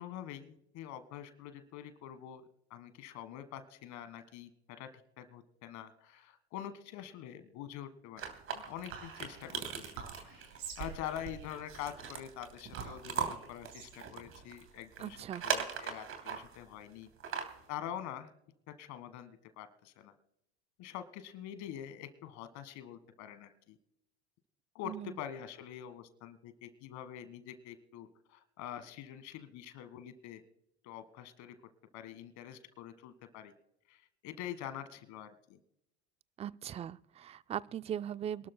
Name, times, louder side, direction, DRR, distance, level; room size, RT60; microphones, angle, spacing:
voice 1, 0.0-2.4 2.7-4.9 5.2-8.2 8.5-9.9 10.2-17.1 17.7-18.3 18.7-20.1 20.8-23.8 24.7-30.4 30.8-31.6 31.9-33.5 33.9-35.6, left 10 dB, 60° left, 11 dB, 1.6 m, -45 dB
sound 1, 8.2-16.6 17.1-17.7, right 7 dB, 45° right, 3.0 m, -40 dB
Whispering, 8.9-15.6, right 7 dB, 70° right, 6.2 m, -48 dB
voice 2, 15.0-15.4 24.8-25.1 36.4-38.5, right 9 dB, 20° right, 17 dB, 0.4 m, -39 dB
27.0 x 12.5 x 2.2 m, 0.79 s
supercardioid pair, 95°, 32 cm